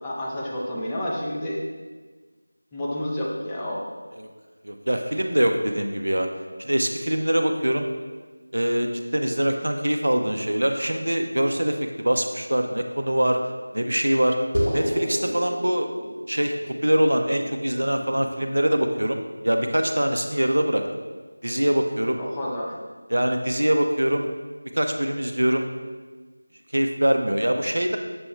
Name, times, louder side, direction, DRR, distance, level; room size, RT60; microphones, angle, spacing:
voice 1, 0.0-1.6 2.7-3.8 22.2-22.8, left 1 dB, 10° left, -6 dB, 0.4 m, -29 dB
voice 2, 4.6-6.3 6.6-7.9 8.5-13.4 13.7-14.4 14.7-15.9 16.3-20.8 21.4-22.2 23.1-24.3 24.7-25.7 26.7-28.0, equal, 70° right, 5 dB, 0.4 m, -23 dB
sound 1, 14.5-19.3, equal, 60° left, 1.1 m, -31 dB
6.8 x 3.0 x 2.3 m, 1.4 s
figure-of-eight pair, 170°, 0 cm